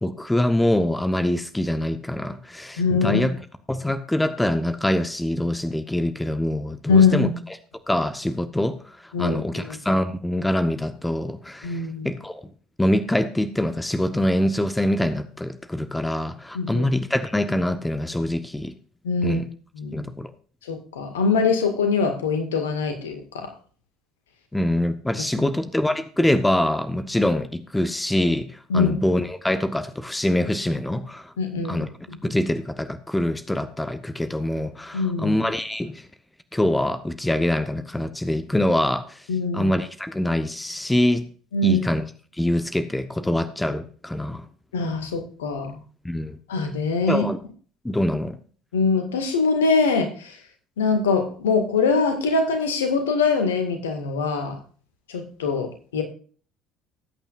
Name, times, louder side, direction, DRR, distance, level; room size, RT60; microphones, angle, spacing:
voice 1, 0.0-3.4 3.7-7.3 7.9-8.8 9.0-12.5 12.8-18.7 19.2-19.5 19.9-20.3 24.5-31.3 31.7-31.9 32.2-36.1 36.5-39.2 39.5-41.2 41.6-42.1 42.4-44.4 46.0-46.4 47.1-47.4 47.8-48.4, left 1 dB, 10° left, 11 dB, 1.1 m, -24 dB
voice 2, 2.8-3.2 6.9-7.3 9.1-9.7 11.6-12.1 16.5-16.9 19.0-19.4 19.8-20.1 20.7-23.5 25.4-25.5 28.7-28.9 31.4-31.9 34.9-35.4 39.3-39.7 41.5-41.8 44.7-45.8 46.5-47.3 48.7-50.4 50.8-54.6 55.1-56.0, left 4 dB, 70° left, 6 dB, 2.0 m, -23 dB
19.5 x 8.9 x 2.5 m, 0.42 s
figure-of-eight pair, 60°, 0 cm